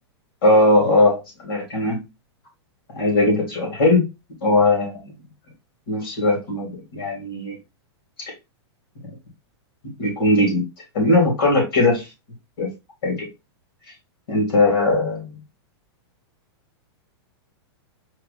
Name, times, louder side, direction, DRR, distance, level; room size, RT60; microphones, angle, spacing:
voice 1, 0.4-2.0 2.9-4.0 4.4-5.1 5.9-7.6 10.0-10.6 10.9-12.0 12.6-12.7 13.0-13.3 14.3-15.4, left 2 dB, 55° left, -1 dB, 2.9 m, -19 dB
4.6 x 3.2 x 3.2 m, 0.24 s
supercardioid pair, 180°, 14 cm